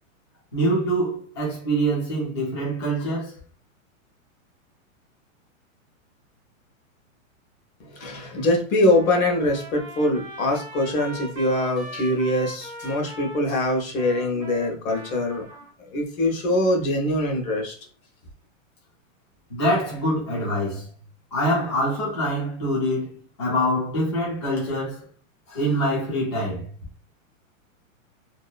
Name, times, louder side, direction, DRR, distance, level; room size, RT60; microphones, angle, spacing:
voice 1, 0.5-3.4 19.5-20.9 21.3-25.0 25.5-26.7, equal, 25° left, 0.3 m, -25 dB
voice 2, 7.8-15.4 15.8-17.7, left 1 dB, 80° left, 1.1 m, -23 dB
Trumpet, 8.8-15.7, right 1 dB, 15° right, 0.6 m, -40 dB
2.8 x 2.4 x 2.2 m
supercardioid pair, 175°, 41 cm